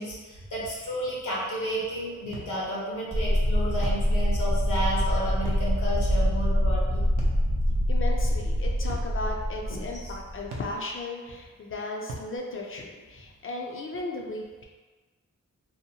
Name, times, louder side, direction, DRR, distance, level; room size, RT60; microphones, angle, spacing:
voice 1, 0.0-7.0 9.7-10.1, equal, 80° left, -6 dB, 0.9 m, -32 dB
sound 1, 0.6-0.9 2.3-2.6 3.8-4.1 5.5-5.7 7.2-7.4 8.9-9.1 10.5-10.8 12.1-12.3, right 2 dB, 85° right, 0.6 m, -39 dB
voice 2, 2.3-2.6 7.9-14.6, left 2 dB, 45° left, 0 dB, 0.5 m, -36 dB
sound 2, 3.1-10.7, equal, 20° right, 0.3 m, -25 dB
2.8 x 2.1 x 2.7 m, 1.3 s
wide cardioid pair, 95°, 31 cm